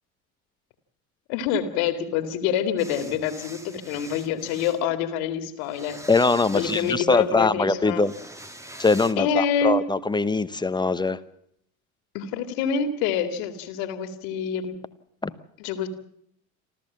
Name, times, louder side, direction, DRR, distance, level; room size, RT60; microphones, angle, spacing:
voice 1, 1.3-6.0 6.5-8.1 9.2-9.8 12.1-14.8 15.6-15.9, left 7 dB, 60° left, 9 dB, 2.3 m, -26 dB
sound 1, 2.8-4.8 5.6-7.3 8.0-9.1, right 1 dB, 5° right, 1.7 m, -43 dB
voice 2, 6.1-8.1 8.8-11.2 15.2-15.3, left 3 dB, 10° left, 14 dB, 1.1 m, -22 dB
28.0 x 13.5 x 7.4 m, 0.71 s
figure-of-eight pair, 65°, 42 cm